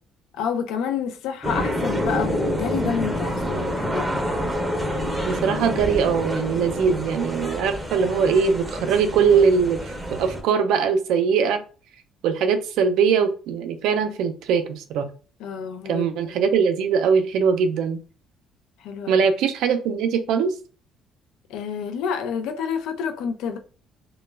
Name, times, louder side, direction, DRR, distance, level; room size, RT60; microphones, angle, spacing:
voice 1, 0.3-4.2 15.4-16.4 18.8-19.2 21.5-23.6, left 7 dB, 85° left, 0.4 m, -29 dB
sound 1, 1.4-10.4, equal, 10° right, 0.6 m, -27 dB
voice 2, 5.3-9.8 10.1-11.6 12.2-15.1 15.9-18.0 19.1-20.5, right 6 dB, 80° right, 0.4 m, -21 dB
2.2 x 2.1 x 3.1 m
cardioid pair, 115°, 0 cm